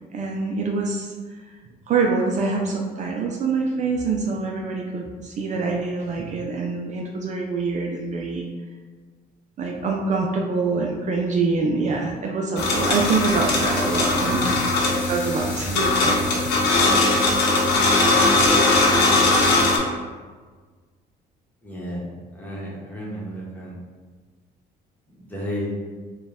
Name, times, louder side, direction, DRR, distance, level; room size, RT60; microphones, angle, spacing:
voice 1, 0.1-1.4 1.9-8.4 9.6-16.4, right 4 dB, 45° right, 0 dB, 0.4 m, -25 dB
sound 1, 12.6-19.8, left 2 dB, 85° left, 0.9 m, -20 dB
voice 2, 21.6-22.1 22.3-23.7 25.1-25.7, equal, 10° left, -6 dB, 1.2 m, -32 dB
4.3 x 2.3 x 3.5 m, 1.5 s
cardioid pair, 110°, 17 cm